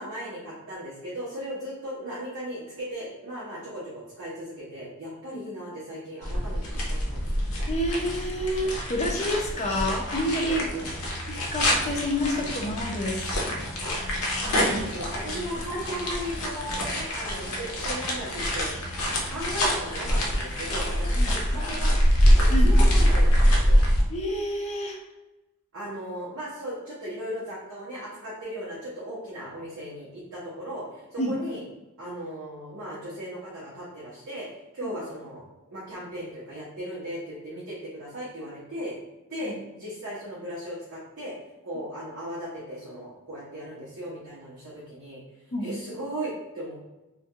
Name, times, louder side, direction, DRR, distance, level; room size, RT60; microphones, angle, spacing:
voice 1, 0.0-7.3 10.4-10.9 13.8-14.0 14.5-18.7 19.3-22.0 22.4-23.8 25.7-31.6 32.0-34.5 34.7-38.9 39.3-41.3 41.6-45.2 45.6-46.8, equal, 60° right, -7 dB, 0.7 m, -37 dB
sound 1, 6.2-24.0, equal, 80° left, 0.6 m, -25 dB
voice 2, 7.7-10.7 11.3-13.5 14.4-14.8 15.6-15.7 21.2-21.4 22.5-22.7 24.1-25.0 31.2-31.3 34.8-34.9 39.4-39.5 45.5-45.7, equal, 30° left, 1 dB, 0.4 m, -29 dB
2.2 x 2.2 x 2.7 m, 1.0 s
head